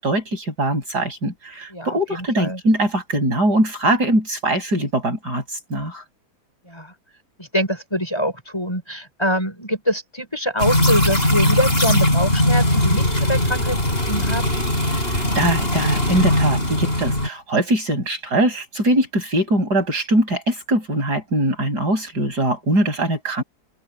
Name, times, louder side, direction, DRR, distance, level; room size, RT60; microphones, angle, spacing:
voice 1, 0.0-6.0 15.1-23.4, right 1 dB, 85° right, 8.5 m, -22 dB
voice 2, 1.7-2.6 6.7-6.9 7.4-13.8 14.1-14.5, equal, 15° left, 7.2 m, -24 dB
sound 1, 10.6-17.3, left 1 dB, 35° left, 7.8 m, -19 dB
open air
omnidirectional pair, 1.7 m